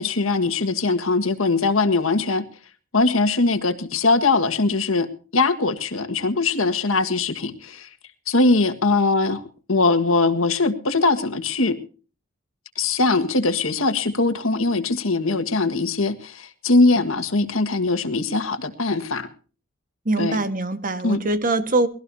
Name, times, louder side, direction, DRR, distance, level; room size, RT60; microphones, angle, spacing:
voice 1, 0.0-2.4 2.9-7.9 8.3-9.4 9.7-11.8 12.8-19.3 20.2-20.4 21.0-21.2, left 3 dB, 85° left, 1.7 m, -21 dB
voice 2, 20.0-21.9, right 2 dB, 40° right, 1.5 m, -23 dB
21.5 x 17.0 x 2.8 m
head